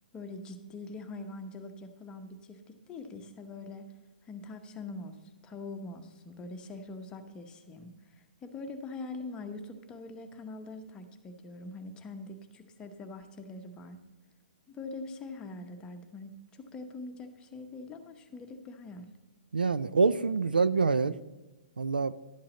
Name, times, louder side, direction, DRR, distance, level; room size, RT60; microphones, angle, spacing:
voice 1, 0.1-3.9 4.3-5.2 5.4-7.9 8.2-14.0 14.7-19.1, left 3 dB, 20° left, 6 dB, 0.9 m, -43 dB
voice 2, 19.5-21.2 21.8-22.1, right 4 dB, 85° right, 16 dB, 0.4 m, -26 dB
12.0 x 8.6 x 4.0 m, 1.2 s
figure-of-eight pair, 125°, 5 cm